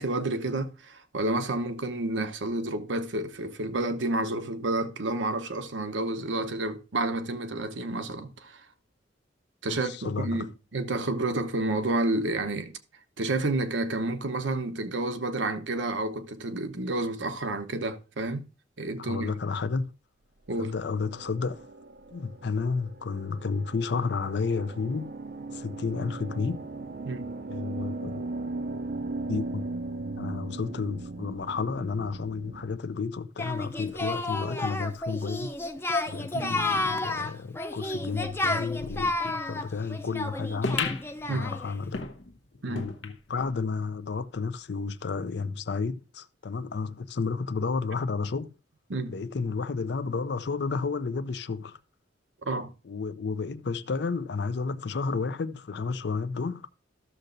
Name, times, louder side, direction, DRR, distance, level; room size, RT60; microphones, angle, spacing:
voice 1, 0.0-8.6 9.6-12.7 13.2-18.4 18.8-19.3 20.5-20.7 27.1-27.3 36.3-36.5 41.3-41.5 42.6-42.9 48.9-49.1 52.5-52.7, right 2 dB, 85° right, 0.9 m, -30 dB
voice 2, 9.7-10.5 19.0-19.9 20.6-21.7 22.1-25.1 25.5-26.6 27.5-28.2 29.3-29.7 30.2-35.6 36.1-41.0 41.3-42.1 42.7-48.5 49.1-51.8 52.8-56.7, left 4 dB, 65° left, 0.5 m, -31 dB
sound 1, 20.8-32.7, right 2 dB, 55° right, 0.6 m, -38 dB
Singing, 33.4-41.7, left 2 dB, 15° left, 0.5 m, -31 dB
sound 2, 40.6-43.6 44.0-44.1 44.3-44.4 45.2-45.3, left 4 dB, 80° left, 0.9 m, -35 dB
13.5 x 6.6 x 2.6 m
head